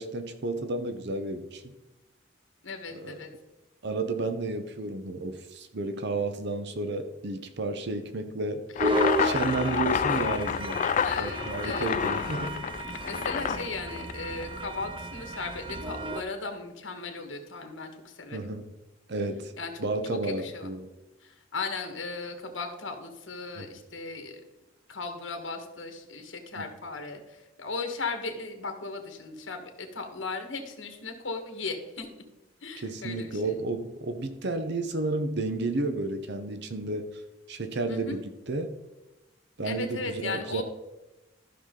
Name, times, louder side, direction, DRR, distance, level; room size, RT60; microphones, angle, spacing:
voice 1, 0.0-1.7 2.9-3.2 3.8-8.6 9.2-10.8 11.2-12.5 18.3-18.7 19.1-19.5 19.8-20.9 23.6-23.7 32.8-37.1 37.5-38.2 38.5-38.7 39.6-40.6, right 2 dB, 60° right, 8 dB, 0.8 m, -32 dB
voice 2, 2.6-3.3 8.9-9.0 11.0-11.9 13.0-18.5 19.6-19.7 20.1-20.7 21.2-24.4 24.9-32.2 32.6-33.6 37.9-38.2 39.6-40.6, left 3 dB, 75° left, 5 dB, 1.7 m, -37 dB
sound 1, 8.8-14.6, left 7 dB, 40° left, 0.3 m, -29 dB
sound 2, 8.8-16.2, right 1 dB, 25° right, 0.5 m, -33 dB
13.5 x 6.1 x 3.8 m, 1.0 s
head